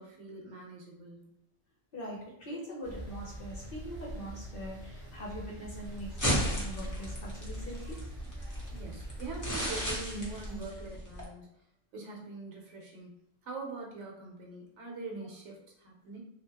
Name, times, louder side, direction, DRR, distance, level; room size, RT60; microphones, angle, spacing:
voice 1, 0.0-1.3 8.7-11.5 11.9-13.1 13.4-16.2, right 3 dB, 65° right, -1 dB, 0.9 m, -43 dB
voice 2, 1.9-8.0, equal, 55° left, -3 dB, 0.7 m, -42 dB
sound 1, 2.8-10.6, right 1 dB, 25° right, 0.7 m, -44 dB
sound 2, 5.8-11.2, equal, 25° left, 0.4 m, -35 dB
2.8 x 2.3 x 2.8 m, 0.74 s
omnidirectional pair, 1.3 m